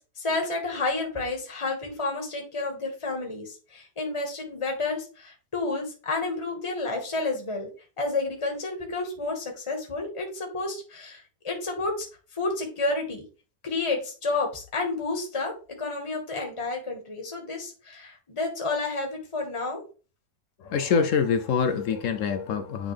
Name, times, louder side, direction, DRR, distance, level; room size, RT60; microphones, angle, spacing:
voice 1, 0.2-7.7 8.0-12.1 12.3-13.2 13.6-15.5 15.8-19.8, left 3 dB, 20° left, 1.6 m, -30 dB
voice 2, 20.6-22.9, left 6 dB, 70° left, 0.7 m, -25 dB
9.4 x 3.7 x 3.4 m
omnidirectional pair, 1.9 m